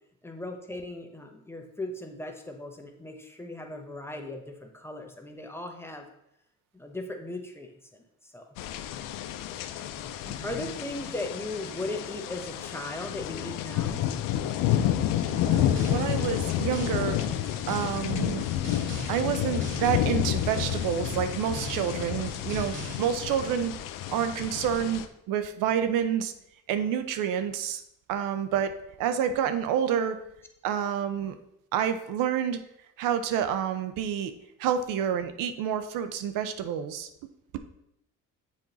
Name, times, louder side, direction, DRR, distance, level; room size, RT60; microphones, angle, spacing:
voice 1, 0.2-6.1 6.7-8.0 8.3-8.5 9.8-10.1 10.4-14.0, left 2 dB, 5° left, 3 dB, 0.9 m, -38 dB
sound 1, 8.6-25.1, left 11 dB, 80° left, 0.6 m, -30 dB
sound 2, 15.3-23.0, right 2 dB, 35° right, 2.7 m, -41 dB
voice 2, 15.4-17.2 17.7-18.4 19.1-23.8 24.1-26.3 26.7-27.8 28.1-28.7 29.0-30.2 30.6-31.3 31.7-32.6 33.0-34.3 34.6-37.1, right 9 dB, 80° right, 10 dB, 0.6 m, -28 dB
7.1 x 4.4 x 4.0 m, 0.78 s
cardioid pair, 100°, 32 cm